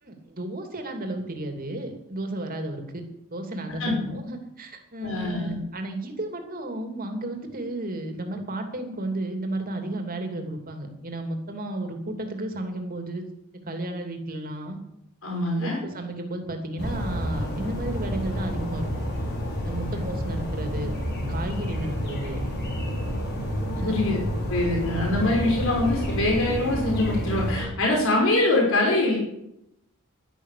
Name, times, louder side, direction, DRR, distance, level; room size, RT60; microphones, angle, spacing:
voice 1, 0.0-3.0 3.3-13.3 13.7-14.8 15.6-18.9 19.6-20.9 21.3-22.4 23.8-24.0, right 1 dB, 40° right, 4 dB, 2.9 m, -33 dB
voice 2, 5.0-5.6 15.2-15.8 23.8-24.2 24.5-29.2, left 2 dB, 65° left, -1 dB, 5.3 m, -24 dB
sound 1, 16.8-27.6, equal, 50° left, 5.3 m, -29 dB
12.0 x 11.5 x 8.5 m, 0.81 s
head